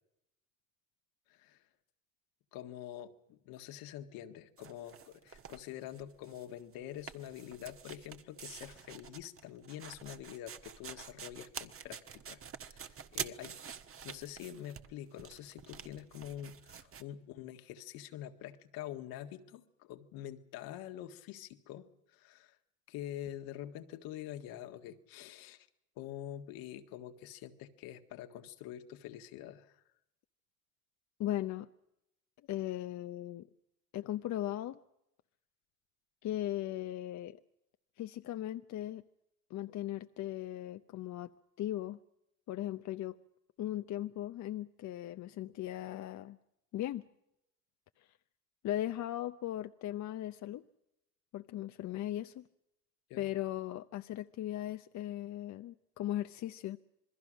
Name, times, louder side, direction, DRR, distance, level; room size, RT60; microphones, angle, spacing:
voice 1, 1.3-1.6 2.5-13.6 14.0-22.6 22.9-25.7 26.0-29.8 53.1-53.3, left 11 dB, 70° left, 7 dB, 1.7 m, -46 dB
sound 1, 4.6-6.5 6.7-17.0, right 7 dB, 35° right, 1.4 m, -47 dB
voice 2, 31.2-31.7 32.5-33.4 33.9-34.8 36.2-37.4 38.0-39.0 39.5-41.3 41.6-42.0 42.5-43.2 43.6-46.4 46.7-47.0 48.0-48.1 48.6-50.6 51.3-52.5 53.2-56.8, left 13 dB, 50° left, 10 dB, 0.8 m, -38 dB
27.0 x 21.0 x 6.3 m, 0.83 s
supercardioid pair, 80°, 37 cm